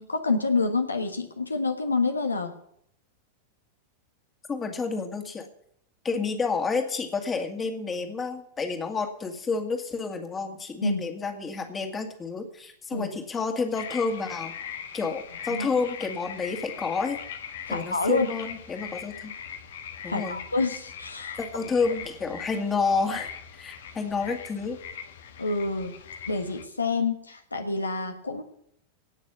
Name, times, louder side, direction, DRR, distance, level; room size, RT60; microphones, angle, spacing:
voice 1, 0.0-2.5 10.8-11.0 12.9-13.1 15.5-15.7 17.7-18.3 20.1-21.4 25.4-25.9 26.3-28.4, left 3 dB, 80° left, 5 dB, 1.4 m, -27 dB
voice 2, 4.5-5.5 6.0-14.6 14.9-17.2 17.7-19.3 20.0-20.4 21.4-24.8, left 4 dB, 20° left, 5 dB, 2.1 m, -30 dB
sound 1, 13.7-26.6, left 8 dB, 60° left, 1.3 m, -41 dB
18.0 x 6.4 x 7.0 m, 0.69 s
figure-of-eight pair, 90°, 0 cm